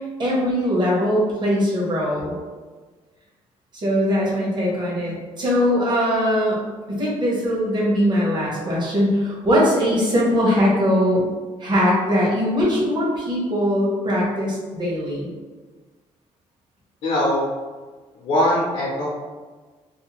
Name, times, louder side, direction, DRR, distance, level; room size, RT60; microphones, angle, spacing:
voice 1, 0.2-2.3 3.7-6.6 6.9-11.2 11.6-15.3, equal, 40° right, -5 dB, 1.0 m, -21 dB
voice 2, 17.0-17.4 18.1-19.1, left 1 dB, 75° left, -5 dB, 0.6 m, -21 dB
2.7 x 2.1 x 2.9 m, 1.3 s
cardioid pair, 110°, 12 cm